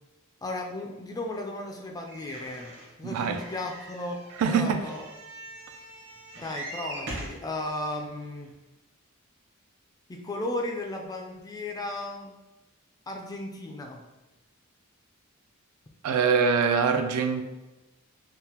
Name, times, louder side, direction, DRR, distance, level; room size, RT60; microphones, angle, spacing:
voice 1, 0.4-2.7 3.0-4.2 4.5-5.0 6.4-8.5 10.1-12.4 13.1-14.0, left 2 dB, 15° left, 2 dB, 0.3 m, -35 dB
sound 1, 2.1-7.4 8.2-8.3 8.5-8.6, right 1 dB, 55° right, 0.7 m, -42 dB
voice 2, 3.0-3.4 4.4-4.8 16.0-17.4, right 5 dB, 85° right, 7 dB, 0.3 m, -24 dB
3.5 x 2.0 x 2.8 m, 1.1 s
head